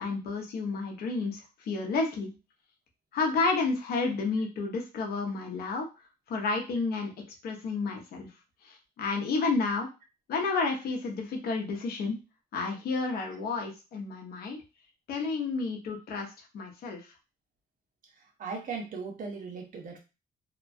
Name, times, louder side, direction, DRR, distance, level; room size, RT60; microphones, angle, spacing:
voice 1, 0.0-1.4 1.7-2.3 3.1-5.9 6.3-7.1 7.4-8.3 9.0-9.9 10.3-12.2 12.5-14.6 15.1-16.3 16.5-17.0, left 4 dB, 80° left, 1 dB, 0.8 m, -30 dB
voice 2, 18.4-20.0, right 4 dB, 60° right, 1 dB, 0.9 m, -37 dB
2.8 x 2.2 x 2.6 m, 0.29 s
cardioid pair, 110°, 16 cm